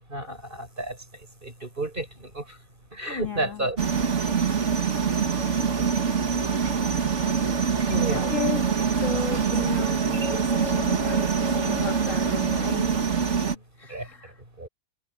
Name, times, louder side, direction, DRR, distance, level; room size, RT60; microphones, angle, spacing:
voice 1, 0.1-1.0 1.4-2.6 2.9-3.9 7.9-8.4 13.5-13.6 13.9-14.1 14.6-14.7, right 1 dB, 40° right, 6.3 m, -31 dB
voice 2, 3.2-3.7 7.6-8.7 9.0-12.9 13.8-14.3, left 6 dB, 65° left, 2.5 m, -35 dB
sound 1, 3.8-13.5, right 6 dB, 60° right, 2.1 m, -24 dB
omnidirectional pair, 1.4 m